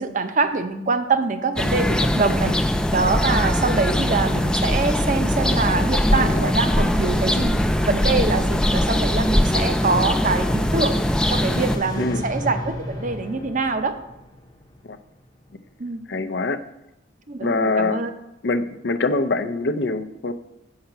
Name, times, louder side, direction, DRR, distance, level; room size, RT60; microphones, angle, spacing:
voice 1, 0.0-2.5 2.9-7.6 7.9-10.9 11.3-13.9 15.8-16.0 17.3-18.1, right 4 dB, 45° right, 9 dB, 0.7 m, -24 dB
sound 1, 1.6-11.8, left 1 dB, 5° left, 0.4 m, -21 dB
voice 2, 6.2-6.5 12.0-12.2 14.8-15.0 16.1-16.6 17.4-18.0 18.4-20.3, left 3 dB, 65° left, 11 dB, 0.6 m, -24 dB
sound 2, 10.4-15.4, equal, 20° left, 0.8 m, -34 dB
7.7 x 5.7 x 5.8 m, 0.88 s
head